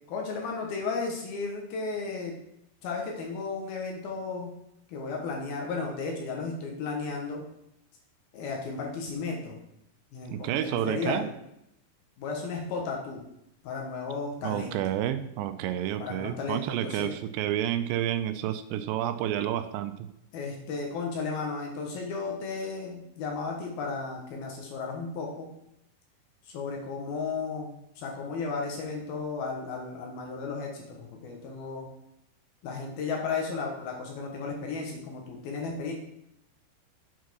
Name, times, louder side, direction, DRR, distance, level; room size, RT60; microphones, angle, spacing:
voice 1, 0.1-2.4 2.8-4.5 4.9-7.4 8.3-9.6 10.1-11.3 12.2-13.2 13.6-14.8 16.0-17.1 20.3-25.5 26.5-31.9 32.6-35.9, left 4 dB, 70° left, 0 dB, 2.8 m, -34 dB
voice 2, 10.3-11.3 14.4-19.9, right 11 dB, 85° right, 10 dB, 2.8 m, -30 dB
8.3 x 4.6 x 6.1 m, 0.80 s
omnidirectional pair, 5.1 m